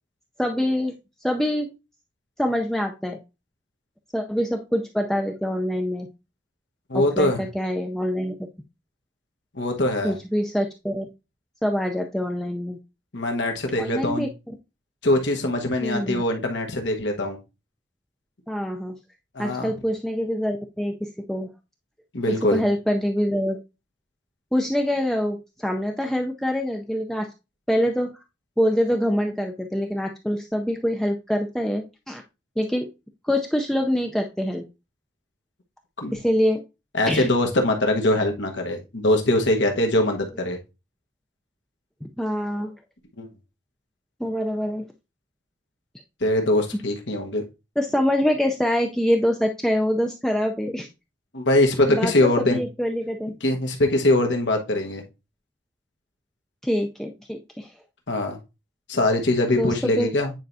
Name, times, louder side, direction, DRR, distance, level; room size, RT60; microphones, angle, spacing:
voice 1, 0.4-0.9 1.2-1.7 2.4-3.2 4.1-6.1 6.9-8.4 10.0-11.1 11.6-12.8 13.8-14.3 15.8-16.2 18.5-19.0 19.4-21.5 22.3-23.6 24.5-27.3 27.7-28.1 28.6-32.2 32.6-32.9 33.2-34.6 36.1-36.6 37.1-37.3 42.0-42.7 44.2-44.9 47.8-50.9 51.9-52.1 52.4-53.3 56.6-57.7 59.6-60.1, equal, ahead, 2 dB, 0.4 m, -25 dB
voice 2, 6.9-7.4 9.5-10.2 13.1-14.3 15.0-17.4 19.3-19.7 22.1-22.6 36.0-36.1 36.9-40.6 43.2-43.3 46.2-47.4 51.3-52.6 53.4-55.0 58.1-58.4 58.9-60.3, left 1 dB, 75° left, 3 dB, 1.2 m, -22 dB
9.1 x 4.5 x 2.6 m, 0.27 s
head